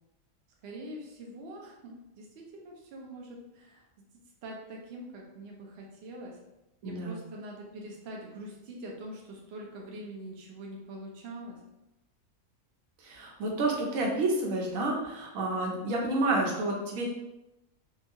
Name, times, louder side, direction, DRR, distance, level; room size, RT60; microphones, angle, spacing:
voice 1, 0.6-3.8 4.4-6.4 6.8-11.6, right 1 dB, 60° right, -1 dB, 0.7 m, -44 dB
voice 2, 6.8-7.2 13.0-17.1, right 2 dB, 90° right, -1 dB, 1.1 m, -29 dB
2.9 x 2.3 x 2.6 m, 0.93 s
omnidirectional pair, 1.4 m